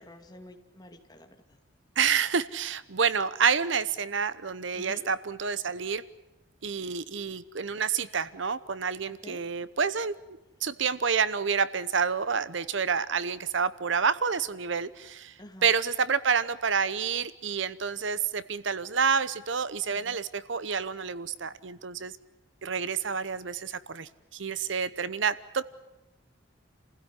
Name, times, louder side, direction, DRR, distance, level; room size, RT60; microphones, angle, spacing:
voice 1, 0.0-1.6 4.7-5.1 9.1-9.5 15.4-15.7 19.9-20.2, left 1 dB, 20° left, 4 dB, 2.5 m, -48 dB
voice 2, 2.0-6.0 6.6-15.3 15.6-22.1 22.6-25.6, right 6 dB, 70° right, 16 dB, 0.9 m, -28 dB
29.0 x 16.0 x 9.9 m, 0.98 s
head